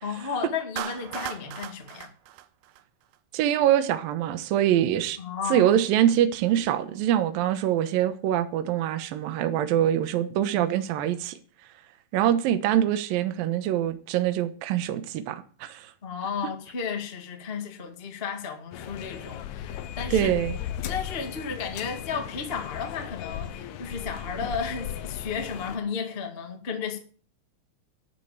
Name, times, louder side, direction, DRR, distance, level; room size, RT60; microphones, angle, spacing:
voice 1, 0.0-2.1 5.2-5.8 16.0-20.3 20.8-27.0, left 6 dB, 30° left, 1.1 m, -33 dB
Clapping, 0.8-3.2, right 13 dB, 90° right, 2.9 m, -37 dB
voice 2, 3.3-5.2 5.5-11.4 12.1-15.9 20.1-20.6, right 11 dB, 70° right, 2.7 m, -24 dB
sound 1, 18.7-25.8, left 10 dB, 75° left, 1.8 m, -36 dB
12.0 x 7.6 x 8.8 m
omnidirectional pair, 4.5 m